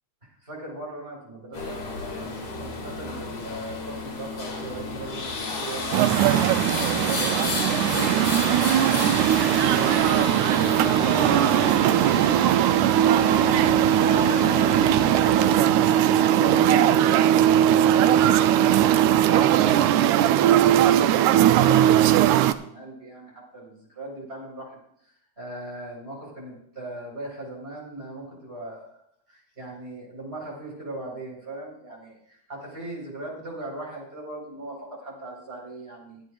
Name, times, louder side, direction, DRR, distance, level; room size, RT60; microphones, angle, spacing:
voice 1, 0.2-10.4 10.7-29.0 29.3-36.2, right 1 dB, 20° right, -2 dB, 4.8 m, -39 dB
sound 1, 1.5-15.5, left 3 dB, 80° left, 3.9 m, -32 dB
sound 2, 5.9-22.5, right 11 dB, 85° right, 2.0 m, -19 dB
22.5 x 9.2 x 2.5 m, 0.70 s
omnidirectional pair, 3.4 m